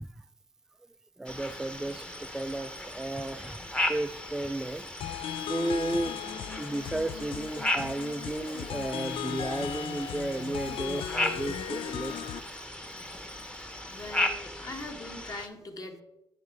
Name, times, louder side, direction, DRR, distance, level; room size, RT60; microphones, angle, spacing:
voice 1, 1.2-3.6 3.9-4.8 5.5-6.2 6.6-12.3, right 1 dB, 5° right, 0.3 m, -33 dB
sound 1, 1.3-15.5, left 1 dB, 10° left, 0.9 m, -36 dB
sound 2, 5.0-12.4, left 10 dB, 70° left, 0.4 m, -37 dB
voice 2, 13.9-16.0, left 2 dB, 40° left, 1.4 m, -41 dB
9.1 x 5.8 x 4.8 m
cardioid pair, 70°, 9 cm